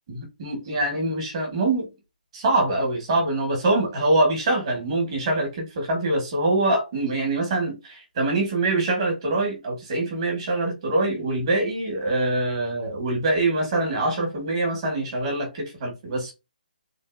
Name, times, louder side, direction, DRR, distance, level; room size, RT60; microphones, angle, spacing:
voice 1, 0.1-1.9 2.3-16.3, right 2 dB, 35° right, 1.5 m, -24 dB
3.5 x 2.7 x 2.6 m
hypercardioid pair, 165°, 5 cm